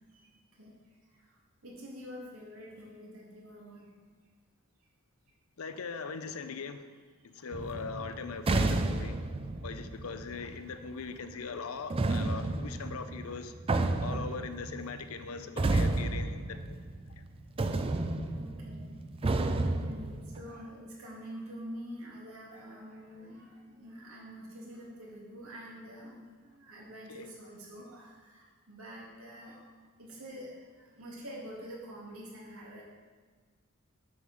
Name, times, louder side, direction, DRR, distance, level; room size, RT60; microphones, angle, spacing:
voice 1, 1.6-3.9 18.2-18.9 19.5-29.7 30.0-32.8, equal, 80° right, -4 dB, 2.5 m, -46 dB
voice 2, 5.6-6.9 7.3-9.2 9.6-13.5 14.0-16.8 27.1-27.3, left 5 dB, 80° left, 10 dB, 0.6 m, -40 dB
sound 1, 7.5-10.9 11.9-17.3 17.6-20.4, right 2 dB, 25° right, 0.4 m, -32 dB
7.8 x 5.5 x 6.3 m, 1.5 s
head